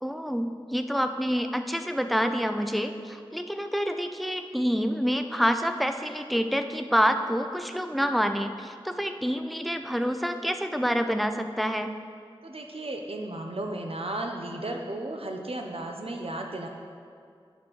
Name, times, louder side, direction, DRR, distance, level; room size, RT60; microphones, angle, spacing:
voice 1, 0.0-11.9, equal, ahead, 7 dB, 0.5 m, -27 dB
voice 2, 12.4-16.7, right 1 dB, 80° right, 2 dB, 0.8 m, -34 dB
9.2 x 4.4 x 6.4 m, 2.3 s
wide cardioid pair, 45°, 10 cm